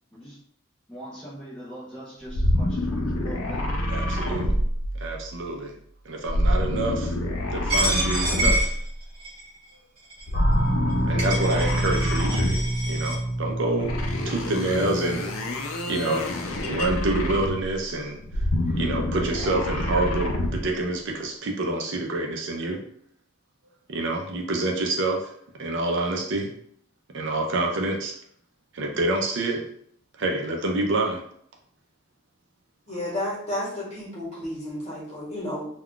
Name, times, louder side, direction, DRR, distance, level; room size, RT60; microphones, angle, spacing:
voice 1, 0.9-3.7, equal, 5° left, -10 dB, 0.6 m, -40 dB
sound 1, 2.3-5.3 6.3-9.0 10.2-12.8 13.8-17.8 18.2-20.7, left 1 dB, 85° left, 0.5 m, -26 dB
voice 2, 3.9-4.5 5.0-5.7 6.0-7.2 7.5-8.7 11.1-14.0 14.3-15.2 15.9-16.3 16.6-18.2 18.8-22.8 23.9-25.3 25.6-26.5 27.1-28.1 28.7-29.7 30.2-31.2, right 2 dB, 60° right, 1 dB, 0.5 m, -27 dB
Coin (dropping), 7.7-9.5 10.1-10.2 10.9-11.0 11.2-13.2, right 1 dB, 25° right, 1.0 m, -28 dB
sound 2, 10.3-16.7, right 1 dB, 50° left, 0.8 m, -29 dB
voice 3, 32.9-35.7, left 1 dB, 30° left, -6 dB, 1.1 m, -32 dB
2.3 x 2.2 x 3.7 m, 0.64 s
head